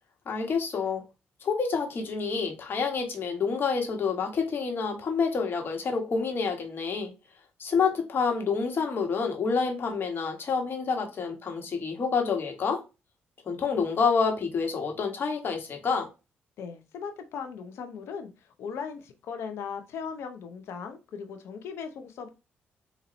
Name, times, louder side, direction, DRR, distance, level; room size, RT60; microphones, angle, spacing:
voice 1, 0.2-1.0 1.4-7.1 7.6-12.8 13.4-16.1, left 5 dB, 55° left, 1.4 m, -28 dB
voice 2, 16.6-22.3, left 6 dB, 75° left, 0.6 m, -38 dB
4.0 x 2.6 x 3.0 m
supercardioid pair, 55°, 4 cm